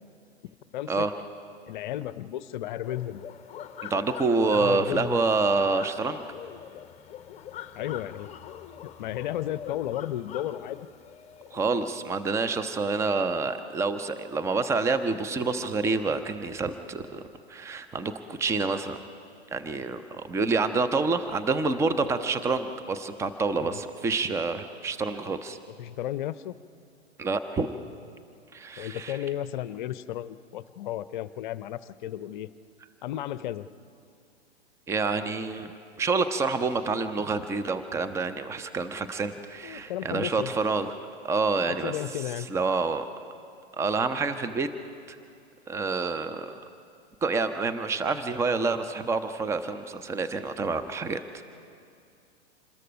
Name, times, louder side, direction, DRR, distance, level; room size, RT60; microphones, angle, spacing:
voice 1, 0.7-1.1 1.7-3.2 4.5-5.2 7.8-8.3 8.8-10.9 23.6-23.8 25.8-26.6 28.8-32.5 33.0-33.7 39.6-40.5 41.7-42.5, left 12 dB, 45° left, 15 dB, 0.7 m, -33 dB
sound 1, 2.8-11.7, left 10 dB, 20° left, 1.0 m, -43 dB
voice 2, 3.8-6.2 11.5-17.2 17.5-19.0 19.5-25.6 27.2-27.8 28.5-29.2 34.9-35.7 36.0-40.9 41.2-41.9 42.4-43.1 43.8-44.7 45.1-45.2 45.7-46.6 47.2-51.2, right 4 dB, 10° right, 11 dB, 0.7 m, -27 dB
26.5 x 20.5 x 5.2 m, 2.5 s
figure-of-eight pair, 105°, 33 cm